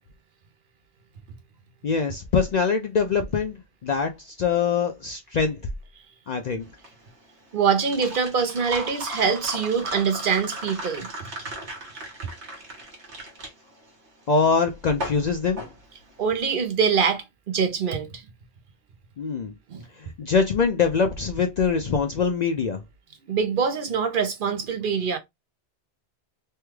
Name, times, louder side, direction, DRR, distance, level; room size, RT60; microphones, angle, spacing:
voice 1, 1.8-3.6 3.8-5.6 6.3-6.7 14.3-15.6 19.2-19.5 20.0-22.8, left 5 dB, 60° left, 0.5 m, -23 dB
sound 1, 6.6-16.5, right 1 dB, 80° right, 1.5 m, -37 dB
voice 2, 7.5-11.1 16.2-18.2 19.7-19.8 23.3-25.2, right 6 dB, 60° right, 0.7 m, -24 dB
3.3 x 2.3 x 3.0 m
omnidirectional pair, 1.1 m